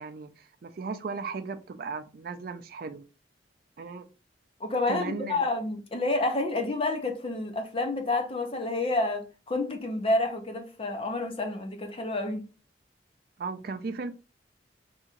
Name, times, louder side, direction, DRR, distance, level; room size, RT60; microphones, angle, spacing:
voice 1, 0.0-3.0 3.8-4.1 4.9-5.4 13.4-14.1, right 4 dB, 55° right, 0.4 m, -36 dB
voice 2, 4.6-12.4, left 2 dB, 30° left, 0.7 m, -29 dB
2.9 x 2.6 x 3.7 m
head